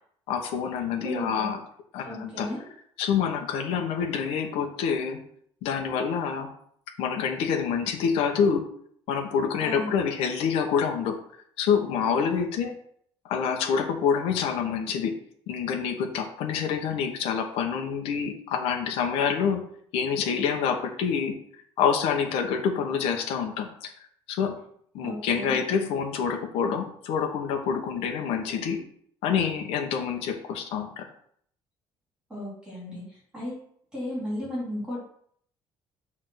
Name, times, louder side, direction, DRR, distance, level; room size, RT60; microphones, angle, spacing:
voice 1, 0.3-1.6 1.9-2.5 3.0-5.2 5.6-6.5 7.0-8.6 9.1-11.2 11.6-12.7 13.2-15.1 15.5-19.6 19.9-21.3 21.8-23.9 24.3-24.5 24.9-28.8 29.2-31.1, left 7 dB, 80° left, 4 dB, 1.2 m, -27 dB
voice 2, 1.0-1.5 2.0-2.6 9.6-9.9 25.0-25.6 32.3-33.0 33.3-33.6 33.9-35.0, left 1 dB, 10° right, -6 dB, 3.3 m, -34 dB
6.8 x 3.7 x 6.3 m, 0.63 s
cardioid pair, 175°, 10 cm